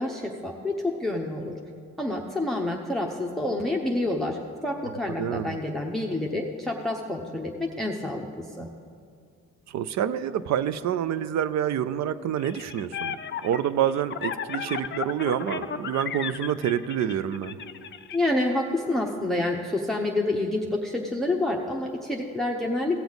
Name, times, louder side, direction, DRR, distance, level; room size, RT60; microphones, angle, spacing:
voice 1, 0.0-1.5 2.0-8.7 18.1-23.0, left 2 dB, ahead, 1 dB, 0.7 m, -28 dB
voice 2, 5.1-5.6 9.7-17.6, right 9 dB, 65° right, 14 dB, 0.5 m, -27 dB
sound 1, 12.4-18.2, left 8 dB, 40° left, 0.4 m, -34 dB
17.0 x 6.9 x 4.0 m, 2.2 s
cardioid pair, 90°, 30 cm